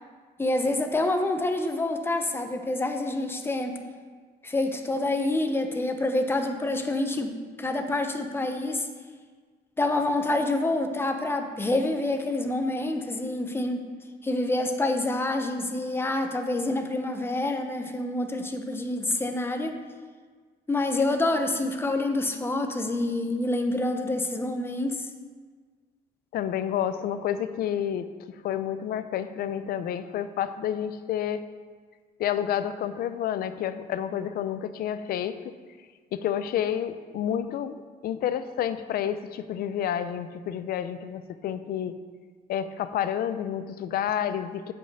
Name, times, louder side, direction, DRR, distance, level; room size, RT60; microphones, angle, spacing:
voice 1, 0.4-3.8 4.4-7.3 7.6-8.9 9.8-13.9 14.2-19.7 20.7-25.0, left 2 dB, 15° left, 5 dB, 0.9 m, -27 dB
voice 2, 26.3-31.4 32.2-35.5 36.1-42.0 42.5-44.7, left 9 dB, 65° left, 12 dB, 0.6 m, -30 dB
7.8 x 5.4 x 6.7 m, 1.5 s
cardioid pair, 110°, 17 cm